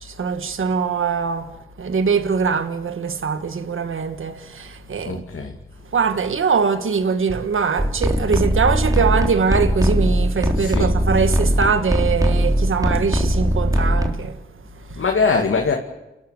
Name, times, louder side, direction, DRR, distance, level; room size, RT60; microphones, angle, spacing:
voice 1, 0.0-5.2 5.9-15.0, right 5 dB, 80° right, 1.6 m, -22 dB
voice 2, 5.0-5.5 10.6-10.9 15.0-15.7, left 4 dB, 75° left, 2.5 m, -21 dB
sound 1, 7.8-14.1, equal, 15° right, 3.6 m, -20 dB
29.5 x 12.5 x 9.4 m
cardioid pair, 45°, 21 cm